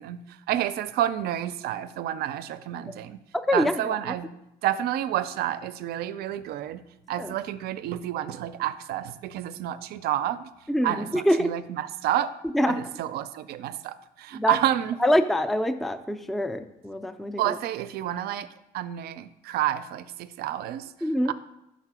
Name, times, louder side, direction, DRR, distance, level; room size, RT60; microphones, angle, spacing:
voice 1, 0.0-3.2 3.5-4.3 4.6-6.8 7.1-10.5 10.8-12.3 12.7-15.0 17.4-18.5 18.7-20.9, right 12 dB, 70° right, 13 dB, 0.4 m, -29 dB
voice 2, 3.5-4.1 7.2-7.3 10.7-11.5 12.5-12.8 14.3-14.6 15.0-17.6 21.0-21.3, equal, ahead, 9 dB, 0.3 m, -25 dB
5.6 x 4.1 x 6.0 m, 0.86 s
cardioid pair, 110°, 17 cm